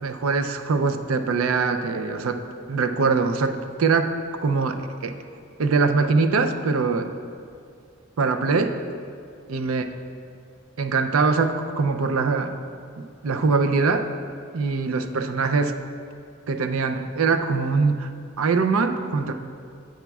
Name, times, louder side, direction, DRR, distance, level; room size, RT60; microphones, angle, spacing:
voice 1, 0.0-2.4 2.7-4.1 4.4-5.1 5.6-7.1 8.2-8.8 9.5-9.8 10.8-12.6 13.0-14.1 14.5-15.7 16.5-18.1 18.4-19.3, right 4 dB, 90° right, 7 dB, 0.5 m, -22 dB
10.0 x 7.9 x 2.3 m, 2.2 s
head